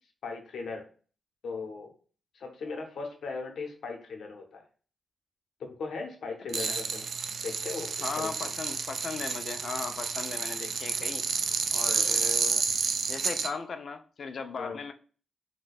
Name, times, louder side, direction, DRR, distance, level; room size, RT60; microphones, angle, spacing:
voice 1, 0.2-0.9 1.4-1.9 2.3-4.6 5.6-7.1 7.4-8.5 11.8-12.2 14.5-14.8, left 4 dB, 80° left, 3 dB, 0.8 m, -38 dB
sound 1, 6.5-13.5, right 5 dB, 60° right, 0.3 m, -30 dB
voice 2, 8.0-11.2 11.7-12.6 13.1-14.9, left 5 dB, 55° left, 8 dB, 0.4 m, -37 dB
2.7 x 2.2 x 4.0 m, 0.40 s
wide cardioid pair, 130°, 0 cm